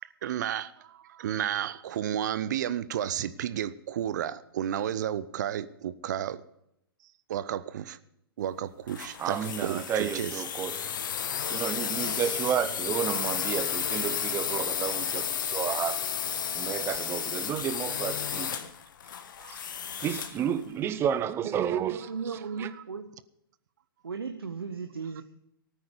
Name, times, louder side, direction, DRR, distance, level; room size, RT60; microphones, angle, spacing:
voice 1, 0.0-6.4 7.3-8.0 8.4-10.4 19.4-19.5, right 10 dB, 50° right, 0.8 m, -32 dB
sound 1, 8.9-20.4, left 8 dB, 55° left, 1.4 m, -32 dB
voice 2, 9.2-11.0 11.4-16.0 16.5-18.6 19.5-19.6 20.0-22.7, right 9 dB, 20° right, 0.8 m, -31 dB
voice 3, 21.4-23.0 24.0-25.2, right 5 dB, 70° right, 1.3 m, -36 dB
18.5 x 9.3 x 5.2 m
figure-of-eight pair, 115°, 13 cm